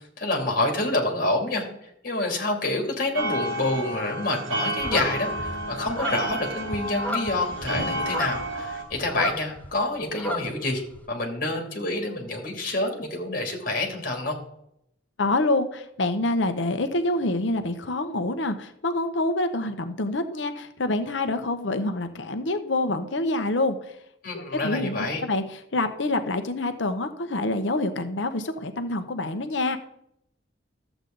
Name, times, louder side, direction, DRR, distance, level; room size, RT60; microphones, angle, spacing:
voice 1, 0.2-10.8 11.1-14.4 24.2-25.2, left 2 dB, 45° left, 2 dB, 2.7 m, -27 dB
sound 1, 3.1-8.8, right 1 dB, 85° right, 2.3 m, -31 dB
sound 2, 4.8-9.8 10.0-11.0, left 1 dB, 10° left, 0.7 m, -34 dB
voice 2, 15.2-23.8 24.3-29.8, left 2 dB, 70° left, 9 dB, 0.8 m, -26 dB
13.0 x 8.0 x 3.9 m, 0.76 s
head